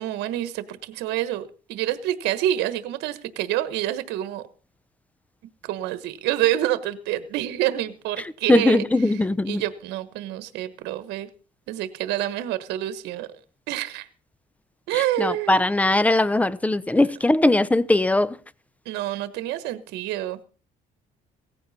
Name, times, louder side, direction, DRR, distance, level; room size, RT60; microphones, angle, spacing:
voice 1, 0.0-4.4 5.6-8.8 9.5-11.3 11.7-13.3 13.7-14.1 14.9-15.7 18.8-20.4, right 13 dB, 90° right, 1.2 m, -27 dB
voice 2, 8.5-9.6 14.9-18.4, left 2 dB, 10° left, 0.8 m, -20 dB
18.0 x 15.0 x 4.2 m
cardioid pair, 110°, 17 cm